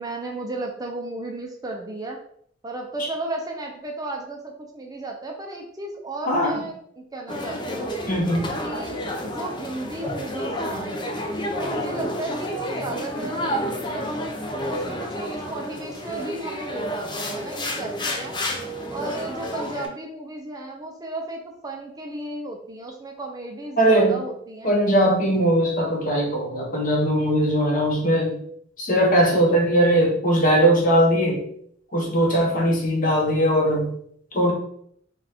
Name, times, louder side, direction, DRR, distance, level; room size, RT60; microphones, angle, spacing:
voice 1, 0.0-2.2 2.6-7.9 8.6-11.0 11.5-14.1 14.7-18.4 18.9-24.7, right 2 dB, 20° right, 1 dB, 0.5 m, -34 dB
sound 1, 7.3-19.9, equal, 25° left, 0.6 m, -30 dB
voice 2, 8.1-8.6 23.8-24.2 24.6-28.4 28.8-31.4 31.9-33.9 34.3-34.5, right 1 dB, 45° left, -1 dB, 1.2 m, -20 dB
4.0 x 2.4 x 4.4 m, 0.66 s
head